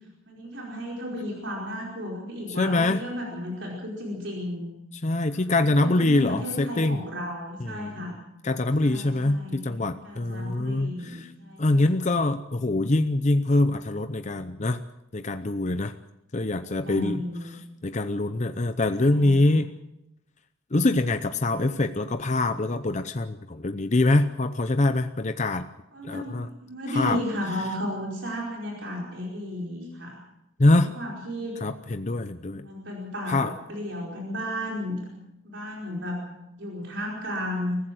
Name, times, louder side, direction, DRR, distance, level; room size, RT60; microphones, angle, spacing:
voice 1, 0.3-4.7 5.3-8.1 8.8-11.9 16.9-17.6 19.0-19.6 25.9-30.2 30.9-31.6 32.5-35.0 35.4-36.2 36.6-37.8, equal, 65° right, -1 dB, 4.9 m, -34 dB
voice 2, 2.6-3.0 4.9-7.0 7.6-8.1 8.4-11.3 11.6-14.8 15.1-15.9 16.3-17.2 17.8-19.7 20.7-25.6 26.0-26.5 26.9-27.2 30.6-30.9 31.6-32.6 33.3-33.5, left 2 dB, 35° left, 9 dB, 0.7 m, -24 dB
23.5 x 15.5 x 7.8 m, 0.88 s
head